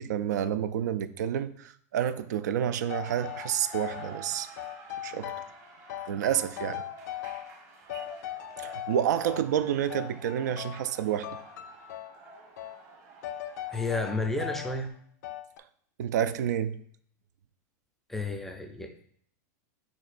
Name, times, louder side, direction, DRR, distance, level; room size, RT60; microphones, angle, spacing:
voice 1, 0.0-4.5 5.0-5.3 6.1-6.8 7.9-8.1 8.6-11.3 16.0-16.8, right 9 dB, 85° right, 0.4 m, -29 dB
sound 1, 2.7-14.9, right 3 dB, 35° right, 1.1 m, -49 dB
sound 2, 2.9-4.1 4.6-5.6 5.9-7.6 7.9-9.5 9.9-11.0 11.2-12.2 12.6-12.8 13.2-14.8 15.2-15.6, left 13 dB, 80° left, 0.3 m, -39 dB
voice 2, 13.7-14.9 18.1-19.0, left 3 dB, 5° left, 0.4 m, -31 dB
6.3 x 3.1 x 2.5 m
supercardioid pair, 145°, 9 cm